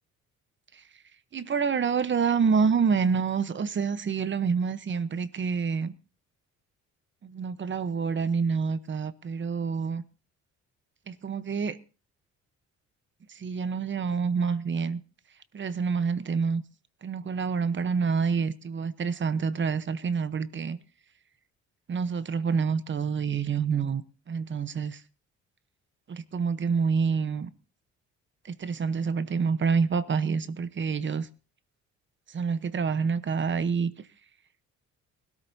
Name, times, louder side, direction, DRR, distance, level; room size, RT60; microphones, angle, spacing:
voice 1, 1.3-5.9 7.2-10.0 11.1-11.8 13.3-15.0 15.5-16.6 17.0-20.8 21.9-24.0 24.3-25.0 26.1-27.5 28.4-31.3 32.3-33.9, right 5 dB, 40° right, 1.0 m, -27 dB
20.0 x 13.0 x 2.8 m
cardioid pair, 90°, 30 cm